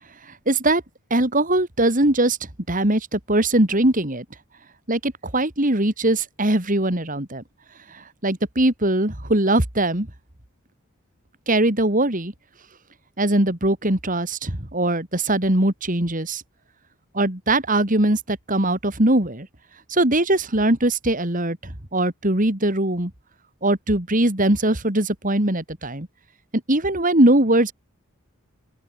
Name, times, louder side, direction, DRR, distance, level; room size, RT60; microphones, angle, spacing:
voice 1, 0.5-0.8 1.1-2.4 2.7-4.2 4.9-7.4 7.9-10.1 11.5-12.3 13.2-16.4 17.1-19.5 19.9-21.6 21.9-23.1 23.6-26.1 26.7-27.7, right 1 dB, 40° right, 3.3 m, -21 dB
open air
head